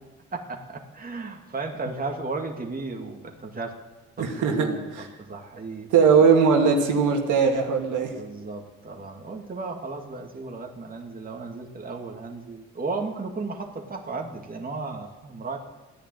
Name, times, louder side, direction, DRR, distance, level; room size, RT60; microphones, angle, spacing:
voice 1, 0.3-3.8 4.2-4.8 5.2-5.9 8.1-15.6, right 3 dB, 30° right, 2 dB, 2.2 m, -34 dB
voice 2, 4.2-4.7 5.9-8.1, right 5 dB, 80° right, 2 dB, 2.5 m, -19 dB
14.0 x 10.0 x 9.2 m, 1.2 s
cardioid pair, 90°, 30 cm